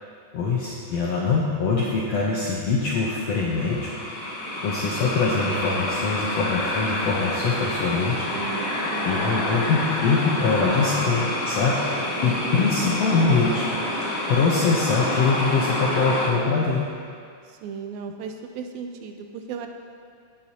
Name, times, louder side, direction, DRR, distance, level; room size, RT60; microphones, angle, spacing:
voice 1, 0.3-3.9 4.6-8.2 9.1-11.8 12.2-13.7 14.3-16.8, left 4 dB, 75° left, -4 dB, 1.4 m, -23 dB
sound 1, 3.3-16.3, left 1 dB, 50° left, 1.8 m, -28 dB
voice 2, 8.3-9.8 17.5-19.7, right 6 dB, 90° right, 5 dB, 2.5 m, -36 dB
16.0 x 7.3 x 2.9 m, 2.2 s
omnidirectional pair, 4.0 m